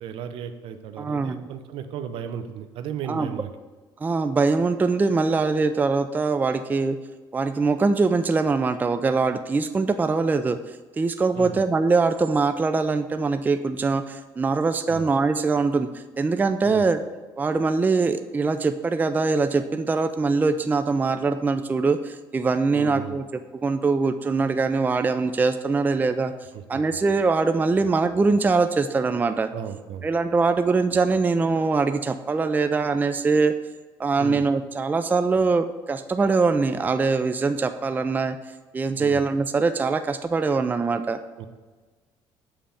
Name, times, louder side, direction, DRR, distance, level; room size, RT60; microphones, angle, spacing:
voice 1, 0.0-3.5 11.3-11.6 14.9-15.1 16.6-16.8 22.7-23.2 26.5-26.8 29.5-30.1 34.2-34.4 39.0-39.2 41.4-41.5, right 8 dB, 70° right, 8 dB, 0.6 m, -35 dB
voice 2, 1.0-1.5 3.1-3.3 4.0-7.0 7.3-17.0 17.4-26.3 26.7-29.5 30.0-33.5 34.0-38.4 38.7-41.2, right 4 dB, 20° right, 9 dB, 0.4 m, -23 dB
7.4 x 3.4 x 5.8 m, 1.3 s
cardioid pair, 95°, 9 cm